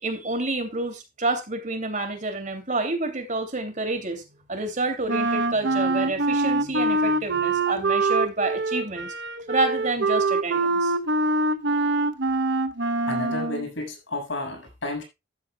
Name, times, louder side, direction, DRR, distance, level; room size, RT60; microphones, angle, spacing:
voice 1, 0.0-4.2 4.5-9.1 9.5-10.9, right 2 dB, 40° right, 2.9 m, -28 dB
Wind instrument woodwind instrument, 5.1-13.7, right 2 dB, 60° right, 1.0 m, -24 dB
voice 2, 13.1-15.0, left 2 dB, 70° left, 6.6 m, -31 dB
14.0 x 12.5 x 2.4 m
head